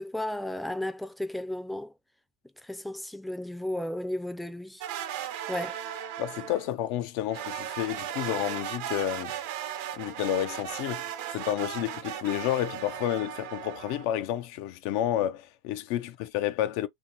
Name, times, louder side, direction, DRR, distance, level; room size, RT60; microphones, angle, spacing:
voice 1, 0.0-1.9 2.6-4.8 5.5-5.8, left 1 dB, 5° left, 0.4 m, -34 dB
sound 1, 4.8-6.7 7.3-14.0, right 11 dB, 65° right, 0.6 m, -36 dB
voice 2, 6.2-9.4 9.9-16.9, left 12 dB, 60° left, 0.4 m, -30 dB
2.9 x 2.7 x 2.9 m
hypercardioid pair, 95°, 0 cm